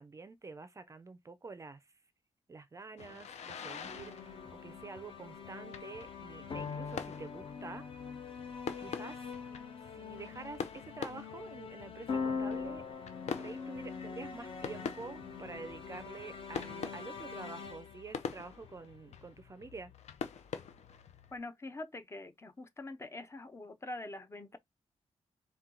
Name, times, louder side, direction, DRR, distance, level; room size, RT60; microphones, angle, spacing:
voice 1, 0.0-1.8 2.5-7.9 8.8-9.3 9.8-12.8 13.4-19.9, right 3 dB, 25° right, 0.4 m, -48 dB
sound 1, 3.0-21.4, left 6 dB, 70° left, 0.6 m, -46 dB
sound 2, 3.8-19.1, left 5 dB, 50° left, 1.1 m, -43 dB
voice 2, 21.3-24.6, left 2 dB, 25° left, 0.5 m, -44 dB
4.3 x 2.2 x 3.7 m
wide cardioid pair, 150°, 12 cm